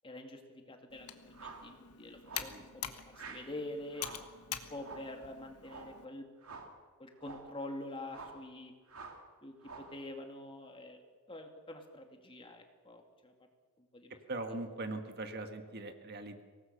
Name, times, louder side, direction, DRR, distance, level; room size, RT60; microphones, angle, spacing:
voice 1, 0.0-2.8 3.1-4.0 4.5-6.3 7.0-8.7 9.4-11.0 11.3-13.3 13.9-14.2, left 1 dB, 25° left, 4 dB, 2.3 m, -46 dB
Computer keyboard, 0.9-6.1, left 10 dB, 90° left, 1.5 m, -46 dB
sound 1, 1.3-1.7 2.2-2.6 3.1-3.5 3.9-4.3 4.8-5.2 5.6-6.0 6.4-6.8 7.2-7.5 8.1-8.4 8.9-9.3 9.6-10.0, right 4 dB, 70° right, 2.8 m, -49 dB
voice 2, 14.3-16.4, right 2 dB, 45° right, 6 dB, 1.8 m, -41 dB
24.5 x 19.0 x 6.7 m, 1.5 s
head